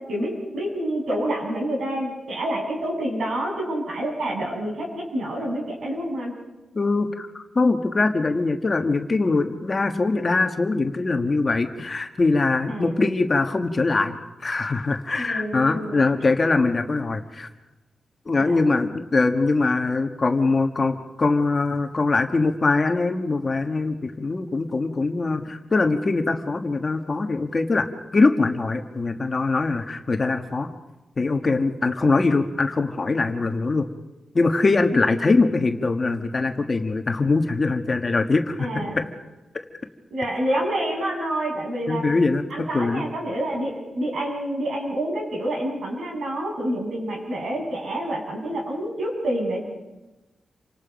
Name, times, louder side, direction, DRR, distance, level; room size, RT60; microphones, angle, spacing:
voice 1, 0.0-6.4 12.7-13.1 15.1-16.0 18.4-18.6 34.9-35.0 38.6-39.0 40.1-42.0 42.5-49.6, right 1 dB, 70° right, 0 dB, 6.9 m, -28 dB
voice 2, 6.7-17.5 18.3-27.9 28.1-30.7 31.2-33.8 34.3-39.0 41.9-43.1, left 3 dB, 30° left, 5 dB, 1.4 m, -22 dB
28.5 x 25.5 x 5.2 m, 1.1 s
wide cardioid pair, 145°, 0 cm